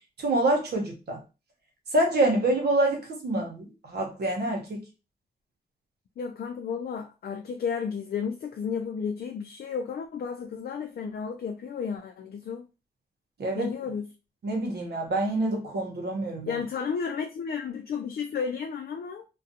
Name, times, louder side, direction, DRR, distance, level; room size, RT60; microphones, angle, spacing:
voice 1, 0.2-1.2 1.9-4.8 13.4-13.7 14.4-16.6, right 2 dB, 70° right, 0.9 m, -26 dB
voice 2, 6.2-12.7 13.5-14.1 16.5-19.2, left 6 dB, 60° left, 0.4 m, -33 dB
2.4 x 2.2 x 2.7 m
cardioid pair, 60°, 17 cm